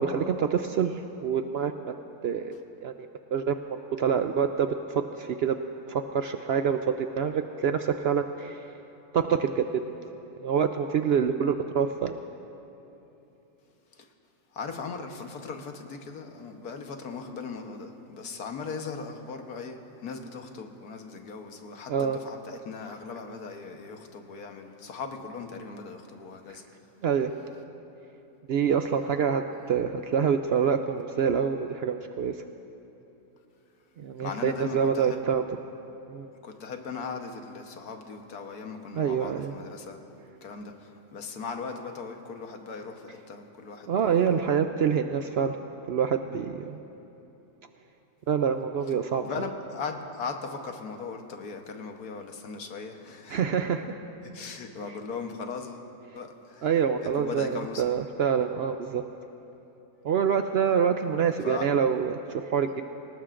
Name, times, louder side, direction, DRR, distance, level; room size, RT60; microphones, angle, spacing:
voice 1, 0.0-1.9 2.2-2.5 2.8-2.9 3.3-3.5 4.0-5.6 5.9-8.7 9.1-9.8 10.4-12.2 21.9-22.2 27.0-27.3 28.5-32.3 34.0-35.4 36.1-36.3 38.9-39.5 43.9-45.6 45.9-46.8 48.3-49.5 53.3-54.0 54.9-55.0 56.6-59.0 60.0-62.8, right 7 dB, 75° right, 7 dB, 0.5 m, -26 dB
voice 2, 14.5-26.6 34.2-35.2 36.4-40.0 40.4-44.5 49.2-53.4 54.3-55.9 56.1-56.7 57.1-57.9 61.4-61.7, left 5 dB, 80° left, 4 dB, 1.6 m, -38 dB
24.5 x 19.0 x 2.5 m, 2.9 s
omnidirectional pair, 1.6 m